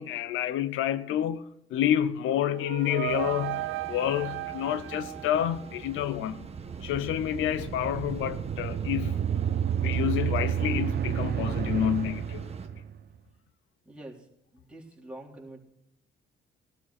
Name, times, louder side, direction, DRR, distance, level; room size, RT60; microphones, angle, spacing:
voice 1, 0.0-1.4 1.7-6.5 6.8-9.2 9.8-12.5, left 11 dB, 90° left, 0.8 m, -29 dB
sound 1, 2.2-6.1, right 17 dB, 80° right, 0.5 m, -36 dB
sound 2, 3.0-12.7, right 4 dB, 30° right, 1.4 m, -45 dB
sound 3, 6.0-13.0, right 9 dB, 55° right, 0.9 m, -30 dB
voice 2, 13.8-14.3 14.5-15.6, right 1 dB, 5° right, 3.8 m, -45 dB
17.5 x 12.5 x 4.2 m
cardioid pair, 90°, 20 cm